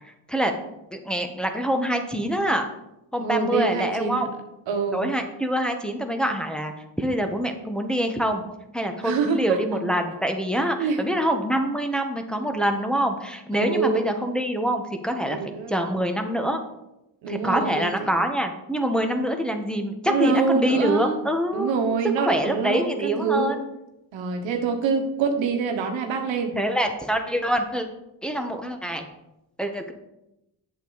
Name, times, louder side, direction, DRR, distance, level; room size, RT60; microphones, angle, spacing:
voice 1, 0.9-2.7 3.1-4.3 4.9-8.4 8.7-15.4 15.7-16.6 17.3-21.7 22.2-23.6 26.5-27.9 28.2-29.0 29.6-29.9, equal, ahead, 4 dB, 1.2 m, -25 dB
voice 2, 3.2-4.3 4.7-5.0 9.0-9.6 10.8-11.0 13.5-14.0 15.3-15.7 17.2-18.1 20.0-21.2 21.5-23.5 24.1-26.5, right 5 dB, 90° right, 5 dB, 1.3 m, -25 dB
8.0 x 7.1 x 4.0 m, 0.89 s
cardioid pair, 70°, 44 cm